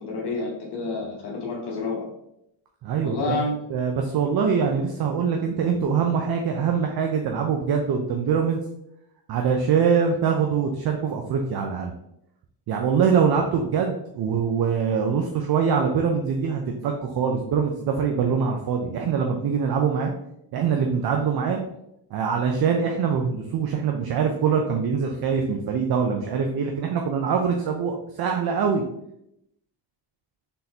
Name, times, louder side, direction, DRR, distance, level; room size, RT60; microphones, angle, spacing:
voice 1, 0.0-2.1 3.0-3.5, left 3 dB, 60° left, -3 dB, 1.2 m, -29 dB
voice 2, 2.8-3.3 3.7-8.6 9.3-11.9 12.7-20.1 20.5-21.6 22.1-28.8, right 6 dB, 55° right, 3 dB, 0.6 m, -23 dB
3.9 x 3.8 x 2.8 m, 0.81 s
cardioid pair, 90°, 45 cm